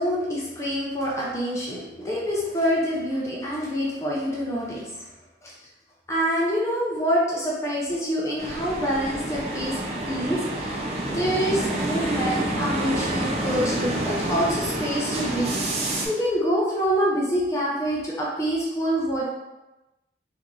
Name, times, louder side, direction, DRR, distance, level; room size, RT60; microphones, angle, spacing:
voice 1, 0.0-4.9 5.4-5.5 6.1-9.8 10.1-10.7 11.1-15.5 16.0-19.3, equal, 15° left, -5 dB, 0.6 m, -26 dB
sound 1, 8.4-16.1, right 1 dB, 35° right, 0.5 m, -28 dB
3.0 x 2.6 x 3.7 m, 1.0 s
head